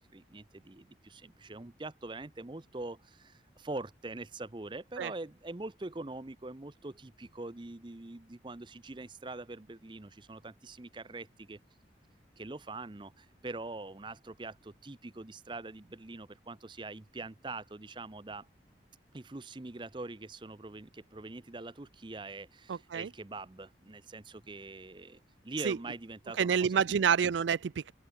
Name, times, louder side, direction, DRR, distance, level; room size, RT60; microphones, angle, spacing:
voice 1, 0.0-11.6 12.4-18.5 19.1-27.0, right 2 dB, 25° right, 0.7 m, -43 dB
voice 2, 22.7-23.1 25.6-25.8 26.4-27.9, right 7 dB, 80° right, 0.4 m, -28 dB
open air
head